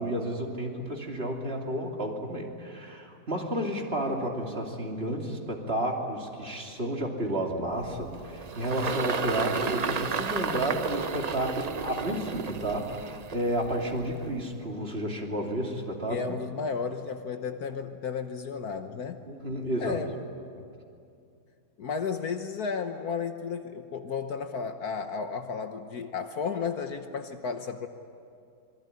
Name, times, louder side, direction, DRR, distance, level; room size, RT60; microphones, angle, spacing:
voice 1, 0.0-16.4 19.2-20.0, right 1 dB, 35° right, 0 dB, 3.1 m, -31 dB
Engine, 7.8-14.4, right 5 dB, 80° right, 0.3 m, -33 dB
voice 2, 16.1-19.2 19.7-20.1 21.8-27.9, left 5 dB, 65° left, 7 dB, 1.5 m, -33 dB
26.0 x 23.0 x 9.7 m, 2.5 s
omnidirectional pair, 1.8 m